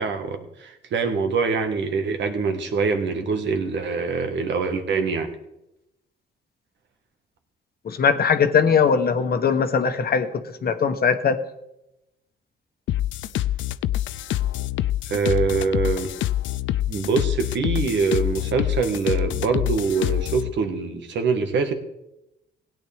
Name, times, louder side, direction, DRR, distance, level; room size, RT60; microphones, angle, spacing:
voice 1, 0.0-5.3 15.1-16.1 16.9-21.7, right 5 dB, 65° right, 6 dB, 1.7 m, -24 dB
voice 2, 7.8-11.4, left 6 dB, 50° left, 7 dB, 1.2 m, -20 dB
sound 1, 12.9-20.5, left 13 dB, 75° left, 0.4 m, -26 dB
17.0 x 9.2 x 3.6 m, 0.87 s
cardioid pair, 90°, 20 cm